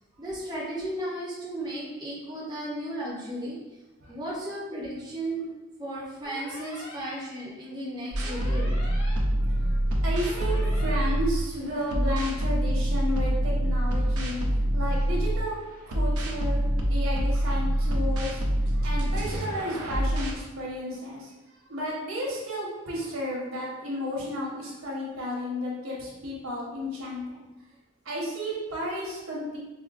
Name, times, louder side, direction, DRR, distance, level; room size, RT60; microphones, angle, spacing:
voice 1, 0.2-3.6 4.1-5.5 5.8-8.7, right 1 dB, 20° right, -6 dB, 0.5 m, -35 dB
sound 1, 6.2-7.1 8.2-9.1 10.2-11.1, left 2 dB, 85° left, 0.7 m, -43 dB
sound 2, 8.1-11.5 11.9-15.5 15.9-20.4, right 1 dB, 90° right, 0.6 m, -26 dB
voice 2, 9.4-14.4 14.7-15.5 15.9-18.4 18.8-21.3 21.7-27.5 28.0-29.6, equal, 70° right, -4 dB, 0.9 m, -33 dB
4.3 x 2.1 x 2.4 m, 1.1 s
head